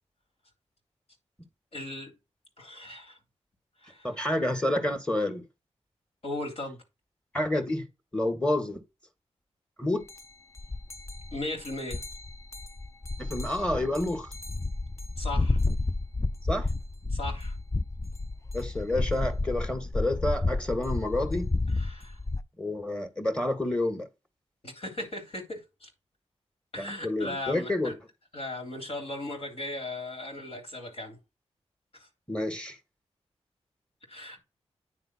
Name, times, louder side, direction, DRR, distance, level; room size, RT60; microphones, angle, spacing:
voice 1, 1.7-2.1 2.6-3.2 3.8-4.1 6.2-6.8 11.3-12.0 15.2-15.6 17.1-17.5 21.8-22.2 24.6-25.9 26.7-27.9 28.3-31.2 31.9-32.1 34.1-34.4, left 2 dB, 60° left, 3.3 m, -37 dB
voice 2, 4.0-5.5 7.3-7.9 8.1-8.8 9.8-10.1 13.2-14.3 16.5-16.7 18.5-21.5 22.6-24.1 26.8-27.9 32.3-32.8, left 1 dB, 10° left, 2.0 m, -29 dB
sound 1, 10.1-10.2 10.6-22.4, left 2 dB, 25° left, 0.5 m, -31 dB
9.6 x 3.7 x 4.4 m
cardioid pair, 55°, 12 cm